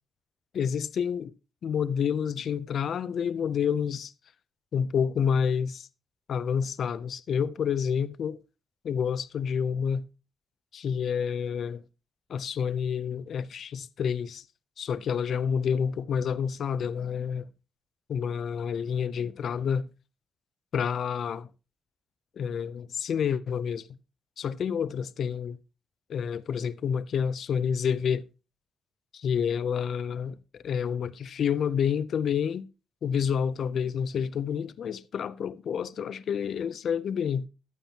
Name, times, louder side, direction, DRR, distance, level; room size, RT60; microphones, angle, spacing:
voice 1, 0.5-1.3 1.6-4.1 4.7-5.9 6.3-8.4 8.8-10.0 10.7-11.8 12.3-14.4 14.8-17.5 18.1-19.9 20.7-21.5 22.4-23.9 24.4-25.6 26.1-28.2 29.1-32.7 33.0-37.5, left 7 dB, 70° left, 0.5 m, -29 dB
12.0 x 9.0 x 2.9 m
cardioid pair, 65°, 0 cm